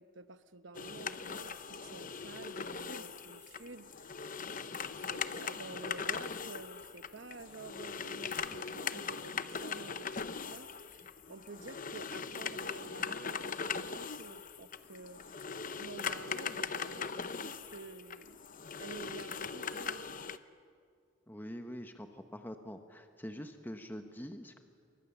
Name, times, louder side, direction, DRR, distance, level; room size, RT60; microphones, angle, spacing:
voice 1, 0.0-4.3 5.1-15.4 15.8-18.5 18.8-20.1, right 3 dB, 65° right, 11 dB, 1.0 m, -50 dB
sound 1, 0.7-20.4, left 6 dB, 40° left, 0.8 m, -40 dB
voice 2, 21.3-24.6, equal, 10° left, 6 dB, 1.0 m, -45 dB
28.5 x 24.0 x 7.1 m, 2.3 s
head